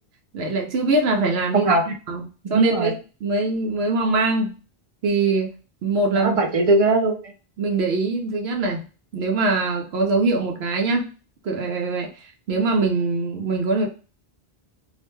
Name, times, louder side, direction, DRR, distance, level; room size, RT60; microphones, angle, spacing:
voice 1, 0.3-2.2 2.5-2.9 3.2-4.5 5.0-5.5 5.8-6.3 7.6-8.8 9.1-11.1 11.4-13.9, right 3 dB, 85° right, 1 dB, 0.8 m, -23 dB
voice 2, 1.5-1.9 2.5-2.9 6.1-7.3, right 2 dB, 45° right, 3 dB, 0.5 m, -20 dB
2.4 x 2.2 x 3.0 m, 0.35 s
omnidirectional pair, 1.0 m